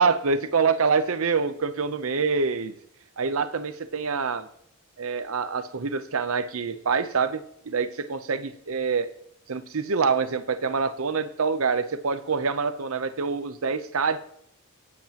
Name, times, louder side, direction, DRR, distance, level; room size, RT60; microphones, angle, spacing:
voice 1, 0.0-2.7 3.2-4.5 5.0-9.1 9.5-14.2, right 5 dB, 65° right, 11 dB, 0.7 m, -26 dB
18.0 x 7.8 x 2.9 m, 0.67 s
head